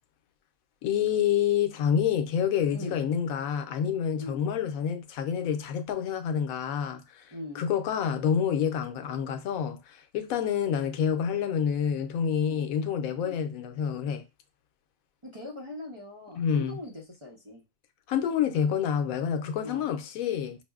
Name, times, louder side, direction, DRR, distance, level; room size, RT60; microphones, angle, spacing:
voice 1, 0.8-14.2 16.3-16.8 18.1-20.6, left 8 dB, 90° left, 1.0 m, -28 dB
voice 2, 7.3-7.6 12.4-12.7 13.2-13.4 15.2-17.6 19.6-19.9, left 2 dB, 30° right, 0.6 m, -41 dB
5.7 x 2.0 x 2.3 m
omnidirectional pair, 1.4 m